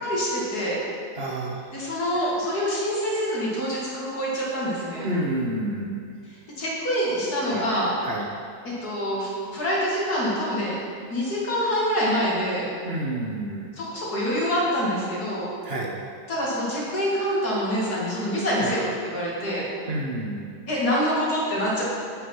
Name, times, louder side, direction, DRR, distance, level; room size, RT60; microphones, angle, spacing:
voice 1, 0.0-0.8 1.7-5.1 6.6-7.9 8.6-10.8 11.1-12.7 13.7-15.5 16.3-19.6 20.7-21.8, equal, 85° left, -6 dB, 2.7 m, -26 dB
voice 2, 1.2-1.7 5.0-6.0 7.5-7.7 8.0-8.3 12.9-13.7 15.6-15.9 18.6-18.8 19.9-20.4, right 1 dB, 45° right, -1 dB, 1.0 m, -29 dB
8.0 x 6.0 x 5.9 m, 2.2 s
omnidirectional pair, 1.6 m